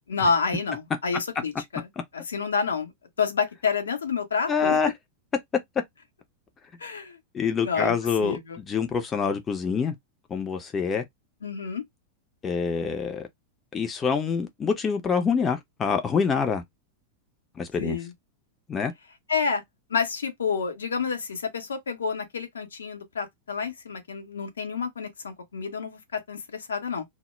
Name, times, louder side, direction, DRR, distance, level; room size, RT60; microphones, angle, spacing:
voice 1, 0.1-1.9 2.1-2.9 3.2-4.8 6.8-7.2 7.6-8.6 11.4-11.8 17.8-18.1 19.3-19.6 19.9-27.0, left 5 dB, 70° left, 0.6 m, -29 dB
voice 2, 4.5-4.9 7.3-8.4 8.7-9.9 10.3-11.0 12.4-13.3 13.7-16.6 17.6-18.0 18.7-18.9, left 6 dB, 20° left, 0.5 m, -26 dB
2.1 x 2.0 x 3.0 m
figure-of-eight pair, 90°, 0 cm